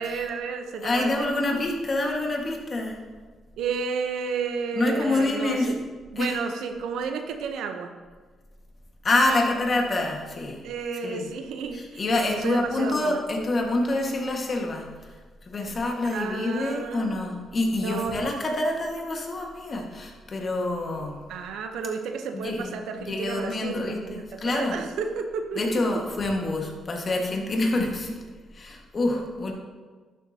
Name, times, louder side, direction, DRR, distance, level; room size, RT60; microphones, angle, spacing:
voice 1, 0.0-1.6 3.6-5.8 6.1-7.9 10.6-12.0 12.3-13.2 16.0-17.2 17.8-18.2 21.3-26.0, right 5 dB, 85° right, 6 dB, 0.8 m, -32 dB
voice 2, 0.8-3.0 4.8-5.7 6.2-6.3 9.0-10.6 11.0-11.3 11.7-15.1 15.4-21.2 22.3-24.8 25.5-28.2 28.5-29.5, left 2 dB, 40° left, 1 dB, 1.6 m, -27 dB
11.5 x 7.4 x 2.8 m, 1.4 s
cardioid pair, 95°, 0 cm